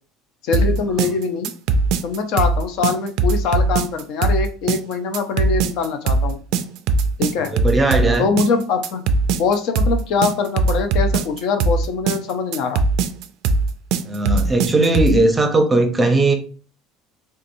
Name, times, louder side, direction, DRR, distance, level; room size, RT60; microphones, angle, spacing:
voice 1, 0.4-1.5 2.0-6.4 7.2-7.5 8.2-9.0 9.3-12.8, left 5 dB, 65° left, 0.5 m, -23 dB
sound 1, 0.5-15.2, right 3 dB, 65° right, 0.3 m, -20 dB
voice 2, 7.5-8.3 14.0-16.3, right 2 dB, 15° right, 0.6 m, -18 dB
3.4 x 2.8 x 2.6 m
cardioid pair, 135°, 0 cm